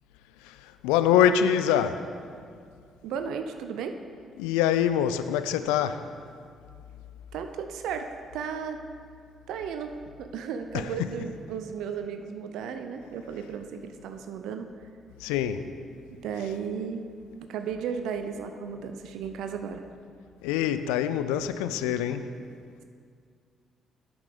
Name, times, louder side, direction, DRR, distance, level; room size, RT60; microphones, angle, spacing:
voice 1, 0.4-2.1 4.4-6.1 10.7-10.9 15.2-15.7 20.4-22.3, left 9 dB, 75° left, 0.3 m, -25 dB
voice 2, 3.0-4.0 7.3-8.8 9.5-14.7 16.2-17.0 17.5-19.8, right 6 dB, 70° right, 0.4 m, -34 dB
8.8 x 6.1 x 5.0 m
figure-of-eight pair, 40°, 0 cm